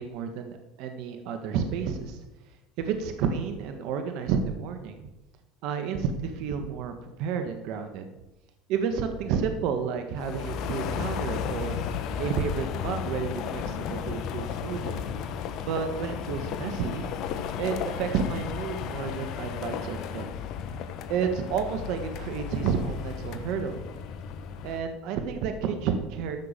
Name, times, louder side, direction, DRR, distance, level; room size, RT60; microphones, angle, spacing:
voice 1, 0.0-2.2 2.8-5.1 5.6-8.1 8.7-11.8 12.2-15.0 15.6-17.1 17.6-20.2 21.1-23.8 24.6-26.4, right 6 dB, 65° right, 7 dB, 1.6 m, -31 dB
sound 1, 10.2-24.8, left 8 dB, 55° left, 1.2 m, -34 dB
13.5 x 6.1 x 7.4 m, 0.97 s
supercardioid pair, 90°, 0 cm